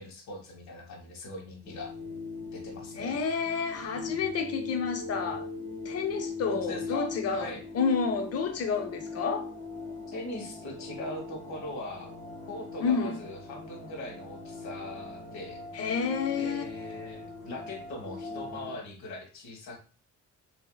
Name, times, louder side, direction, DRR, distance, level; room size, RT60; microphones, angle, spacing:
voice 1, 0.0-1.9 2.5-3.2 6.5-7.6 10.1-12.1 12.5-15.6 16.4-19.8, left 2 dB, 70° left, 1.2 m, -41 dB
sound 1, 1.6-18.8, left 3 dB, 25° left, 1.1 m, -40 dB
voice 2, 2.9-5.5 5.8-9.5 12.8-13.2 15.7-16.7, left 5 dB, 55° left, 0.7 m, -30 dB
3.2 x 2.7 x 2.2 m
cardioid pair, 90°, 30 cm